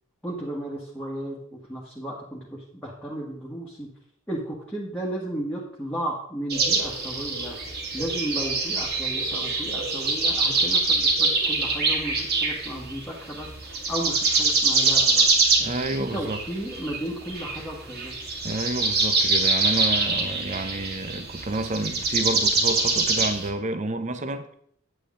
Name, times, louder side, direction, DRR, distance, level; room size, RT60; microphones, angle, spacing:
voice 1, 0.2-3.9 4.3-7.6 7.9-15.3 16.0-18.1, right 1 dB, 10° left, -6 dB, 1.7 m, -34 dB
sound 1, 6.5-13.0 13.3-23.5, right 3 dB, 55° right, 2.2 m, -24 dB
voice 2, 15.6-16.4 18.4-24.5, right 2 dB, 35° right, 10 dB, 0.8 m, -29 dB
10.0 x 8.1 x 3.8 m, 0.65 s
head